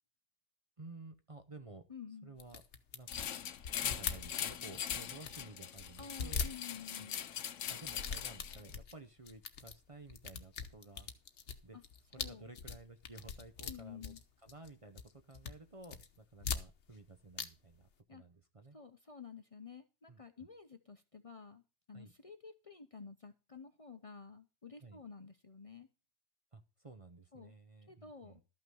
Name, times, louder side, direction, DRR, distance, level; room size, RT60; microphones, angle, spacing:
voice 1, 0.8-1.9 2.2-2.6 2.9-3.3 3.8-6.5 6.9-7.1 7.7-11.1 11.6-11.8 12.1-14.2 14.4-18.8 20.1-20.5 21.9-22.1 24.8-25.0 26.5-28.4, right 3 dB, 30° right, 7 dB, 0.9 m, -54 dB
voice 2, 1.9-2.3 6.0-7.2 11.7-11.8 12.2-12.5 13.7-14.2 18.1-18.2 18.7-21.6 21.9-25.9 27.3-27.5 27.9-28.4, left 6 dB, 35° left, 8 dB, 0.8 m, -51 dB
sound 1, 2.4-5.5 5.8-7.2 7.7-8.9 9.3-9.8 10.1-14.7 15.0-15.5 15.8-17.1 17.3-17.5 17.7-17.8, left 6 dB, 70° left, 1.2 m, -42 dB
sound 2, 3.1-8.7, left 9 dB, 90° left, 1.1 m, -41 dB
13.0 x 5.8 x 6.3 m, 0.30 s
omnidirectional pair, 1.2 m